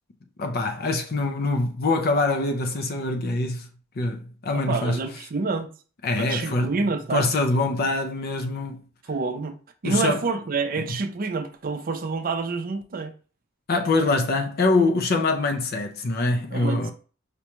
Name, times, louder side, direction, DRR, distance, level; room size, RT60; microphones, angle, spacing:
voice 1, 0.4-3.7 4.0-5.0 6.0-6.7 7.1-8.8 9.8-10.2 10.8-11.0 13.7-16.9, left 2 dB, 50° left, 0.5 m, -24 dB
voice 2, 4.5-5.7 6.2-7.3 9.1-9.5 9.8-13.1 16.5-16.9, right 4 dB, 45° right, 0.5 m, -27 dB
5.1 x 2.2 x 2.9 m
head